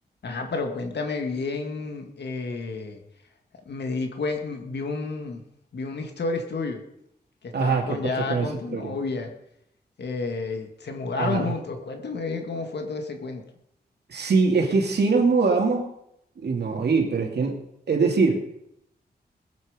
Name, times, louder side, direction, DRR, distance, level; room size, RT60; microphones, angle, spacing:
voice 1, 0.2-3.0 3.7-5.4 5.7-6.8 7.4-9.3 10.0-13.4, left 3 dB, 85° left, 4 dB, 2.1 m, -30 dB
voice 2, 7.5-8.0 8.3-8.9 11.1-11.5 14.1-15.9 16.4-17.6 17.9-18.4, right 4 dB, 80° right, 2 dB, 2.6 m, -22 dB
20.5 x 8.5 x 5.2 m, 0.76 s
wide cardioid pair, 120°, 17 cm